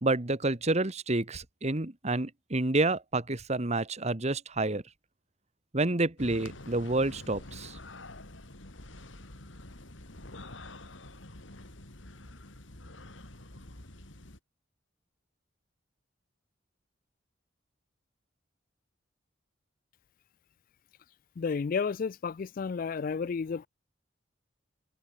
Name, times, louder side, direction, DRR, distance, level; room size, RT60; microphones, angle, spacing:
voice 1, 0.0-4.8 5.7-7.8, right 2 dB, 35° right, 1.5 m, -29 dB
sound 1, 6.2-14.4, left 2 dB, 80° left, 3.7 m, -47 dB
voice 2, 21.4-23.7, left 5 dB, 45° left, 0.4 m, -32 dB
head